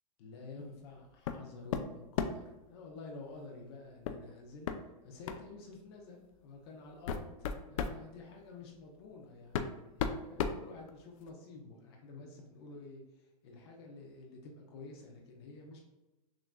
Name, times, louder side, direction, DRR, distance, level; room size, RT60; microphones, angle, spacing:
voice 1, 0.2-4.7 5.0-15.8, left 3 dB, 45° left, 1 dB, 0.9 m, -50 dB
sound 1, 1.3-1.4 1.7-2.5 4.1-4.2 4.7-4.8 5.3-5.5 6.3-6.4 6.9-8.0 9.0-9.1 9.5-11.3, left 7 dB, 70° left, 0.5 m, -35 dB
6.2 x 3.0 x 2.3 m, 1.0 s
supercardioid pair, 170°, 18 cm